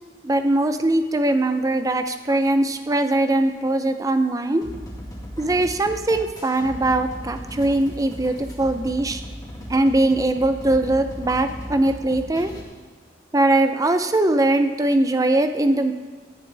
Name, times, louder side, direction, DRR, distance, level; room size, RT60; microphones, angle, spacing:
voice 1, 0.2-4.6 5.4-9.2 9.7-12.5 13.3-15.9, right 2 dB, 20° right, 8 dB, 0.6 m, -21 dB
sound 1, 4.6-12.6, equal, 20° left, 2.1 m, -37 dB
17.0 x 10.5 x 3.4 m, 1.5 s
head